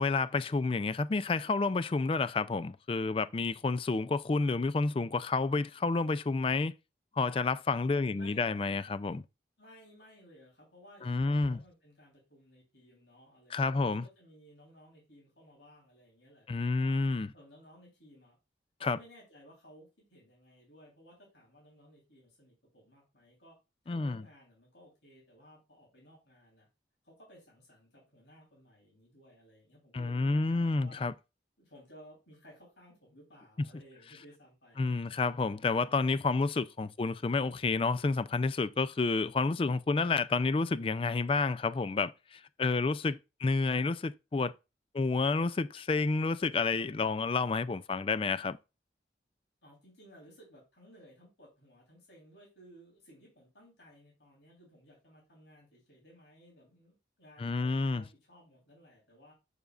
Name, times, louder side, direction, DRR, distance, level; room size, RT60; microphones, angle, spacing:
voice 1, 0.0-6.7 7.2-9.2 11.1-11.6 13.5-14.0 16.5-17.3 18.8-19.0 23.9-24.2 29.9-31.1 34.8-44.5 44.9-48.6 57.4-58.0, left 3 dB, 30° left, 0.3 m, -30 dB
voice 2, 7.9-8.6 9.6-17.0 17.3-18.4 18.9-23.6 23.8-26.7 27.0-31.0 31.6-35.2 49.6-59.3, equal, 80° left, 3.5 m, -58 dB
7.0 x 6.5 x 2.4 m
head